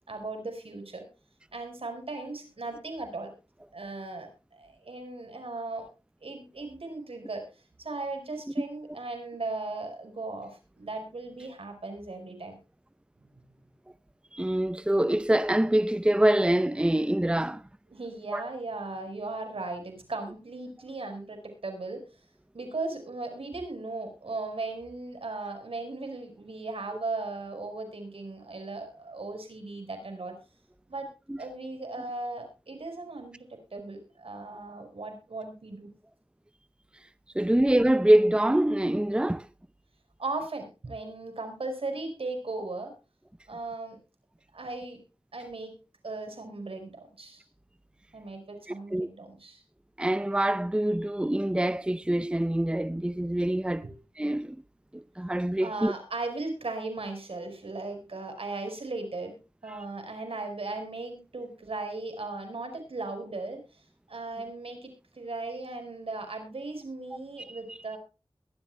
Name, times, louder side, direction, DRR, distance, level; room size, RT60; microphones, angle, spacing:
voice 1, 0.1-1.1 1.5-3.3 3.7-5.9 6.2-7.5 7.8-12.6 17.9-22.0 22.5-30.4 30.9-31.1 31.4-35.9 40.2-42.9 43.5-44.0 44.5-45.0 45.3-45.7 46.0-47.4 48.1-49.6 53.8-54.0 55.6-59.4 59.6-63.8 64.1-68.0, right 3 dB, 85° right, 4.9 m, -37 dB
voice 2, 14.3-17.6 18.3-18.4 31.3-31.4 37.3-39.5 48.9-49.1 50.0-53.8 54.2-54.6 54.9-55.9 59.7-59.8, right 1 dB, 10° right, 0.6 m, -25 dB
22.0 x 12.0 x 2.2 m
wide cardioid pair, 50°, 9 cm